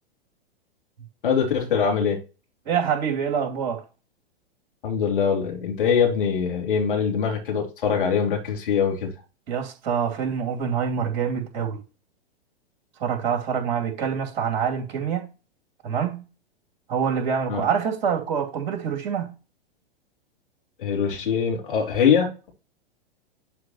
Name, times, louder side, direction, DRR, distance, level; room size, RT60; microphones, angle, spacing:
voice 1, 1.2-2.2 4.8-9.1 17.5-17.6 20.8-22.5, left 7 dB, 60° left, 2.9 m, -23 dB
voice 2, 2.6-3.8 9.5-11.8 13.0-15.3 15.8-16.2 16.9-19.3, right 7 dB, 45° right, 2.8 m, -26 dB
11.0 x 4.9 x 3.0 m
figure-of-eight pair, 100°, 30 cm